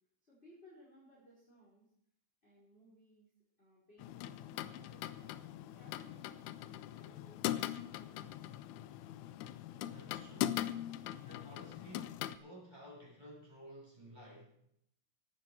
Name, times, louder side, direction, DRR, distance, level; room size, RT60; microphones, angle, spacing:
voice 1, 0.2-1.9 2.4-3.3 3.6-5.4 5.7-8.6, equal, 20° left, -6 dB, 4.7 m, -63 dB
sound 1, 4.0-12.4, left 13 dB, 80° left, 2.1 m, -41 dB
voice 2, 9.7-10.8 11.2-14.6, equal, 10° right, -6 dB, 6.7 m, -54 dB
16.5 x 11.5 x 4.8 m, 0.71 s
omnidirectional pair, 3.6 m